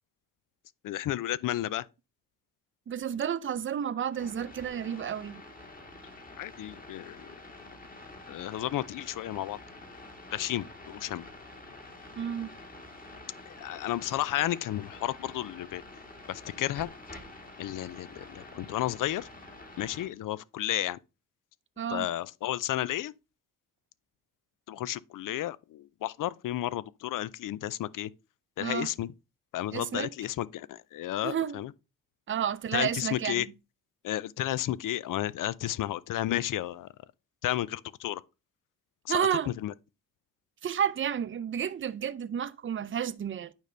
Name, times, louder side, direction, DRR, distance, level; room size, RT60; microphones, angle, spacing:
voice 1, 0.8-1.9 6.4-7.2 8.3-9.6 10.3-11.3 13.5-15.8 16.3-16.9 17.6-19.3 19.8-21.0 21.9-23.1 24.7-28.1 28.6-29.1 29.5-31.7 32.7-33.5 34.0-36.9 37.4-38.2 39.1-39.3 39.6-39.7, left 13 dB, 65° left, 0.5 m, -32 dB
voice 2, 2.9-5.4 12.2-12.5 21.8-22.1 28.6-28.9 29.7-30.1 31.2-31.6 32.3-33.4 39.1-39.5 40.6-43.5, right 8 dB, 35° right, 0.5 m, -31 dB
sound 1, 4.1-20.1, left 2 dB, 25° left, 1.8 m, -48 dB
9.0 x 5.2 x 3.2 m
cardioid pair, 100°, 34 cm